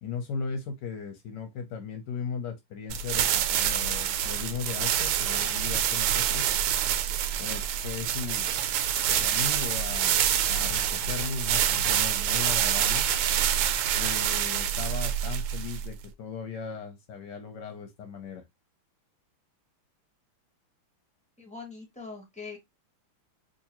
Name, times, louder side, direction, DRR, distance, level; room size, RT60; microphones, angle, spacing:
voice 1, 0.0-6.5 7.4-8.5 9.1-10.2 10.5-13.0 14.0-18.4, left 6 dB, 65° left, 1.2 m, -37 dB
sound 1, 2.9-16.0, right 10 dB, 90° right, 1.5 m, -26 dB
voice 2, 21.4-22.6, left 4 dB, 5° left, 0.8 m, -42 dB
3.8 x 2.9 x 2.9 m
omnidirectional pair, 2.3 m